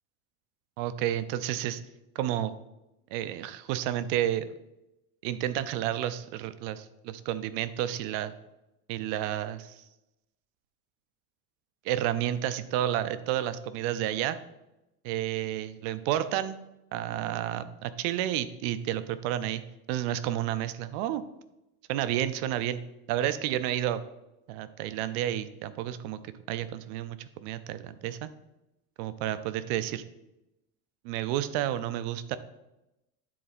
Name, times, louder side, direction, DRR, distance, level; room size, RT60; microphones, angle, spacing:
voice 1, 0.8-1.8 2.1-2.5 3.1-4.5 5.2-8.3 8.9-9.8 11.8-14.4 15.0-16.6 16.9-19.6 19.9-21.2 21.9-22.8 23.1-24.0 24.5-26.2 26.5-28.3 29.0-30.0 31.0-32.4, right 12 dB, 70° right, 13 dB, 0.6 m, -31 dB
10.0 x 4.1 x 4.2 m, 0.93 s
cardioid pair, 175°, 37 cm